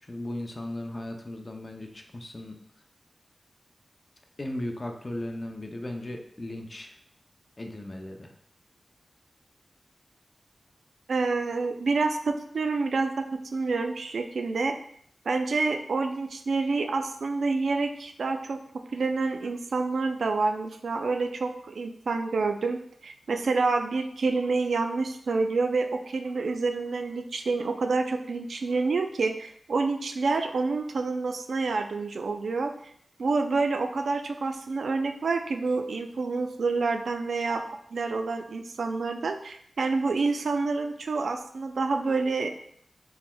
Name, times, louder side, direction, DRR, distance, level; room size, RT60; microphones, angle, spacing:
voice 1, 0.0-2.6 4.4-7.0 7.6-8.3, left 1 dB, 30° left, 3 dB, 0.5 m, -36 dB
voice 2, 11.1-14.8 15.3-18.6 18.9-32.7 33.2-42.5, right 3 dB, 80° right, 6 dB, 0.3 m, -28 dB
4.2 x 3.4 x 2.2 m, 0.67 s
wide cardioid pair, 80°, 0 cm